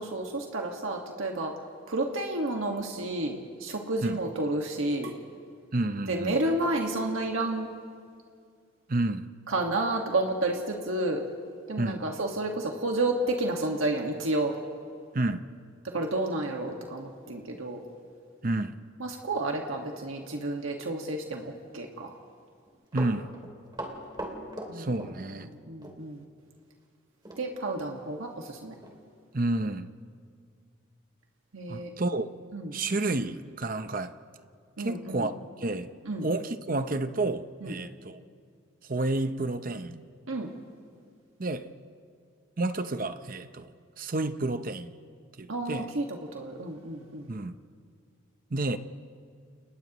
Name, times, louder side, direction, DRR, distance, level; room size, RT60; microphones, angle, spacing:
voice 1, 0.0-1.5 1.9-5.1 6.1-7.7 9.5-11.3 11.7-14.5 15.9-17.8 19.0-22.1 24.7-24.9 25.7-26.2 27.4-28.8 31.5-31.9 32.5-32.8 34.8-35.3 36.0-36.3 37.6-37.7 40.3-40.5 45.5-47.3, right 2 dB, 85° right, 1.7 m, -31 dB
voice 2, 5.7-6.3 8.9-9.3 11.8-12.0 15.1-15.5 18.4-18.8 22.9-23.4 24.7-25.5 29.3-29.9 31.7-32.3 32.7-34.1 34.8-35.3 35.6-35.9 36.2-38.2 38.8-40.0 41.4-41.7 42.6-43.7 44.0-44.9 45.4-45.9 47.3-47.6 48.5-48.8, right 2 dB, 45° right, 0.7 m, -30 dB
Run, 22.7-25.6 25.8-26.0 27.3-27.5 27.8-27.9 28.4-28.5 28.8-29.0 29.6-29.7, right 1 dB, 20° right, 2.7 m, -39 dB
30.0 x 29.5 x 3.1 m
head